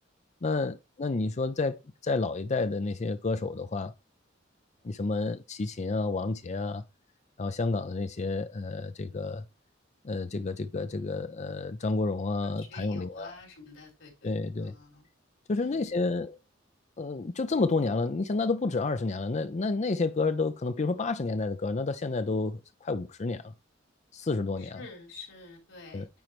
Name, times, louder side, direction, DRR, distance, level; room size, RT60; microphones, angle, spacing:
voice 1, 0.4-3.9 4.8-6.8 7.4-9.4 10.0-13.3 14.2-14.8 15.5-16.4 17.0-23.5 24.1-24.8 25.9-26.1, left 3 dB, 35° left, 0.5 m, -30 dB
voice 2, 12.4-14.3 14.6-15.1 15.5-16.0 24.6-26.1, left 3 dB, 75° left, 3.8 m, -48 dB
9.1 x 4.4 x 3.1 m
head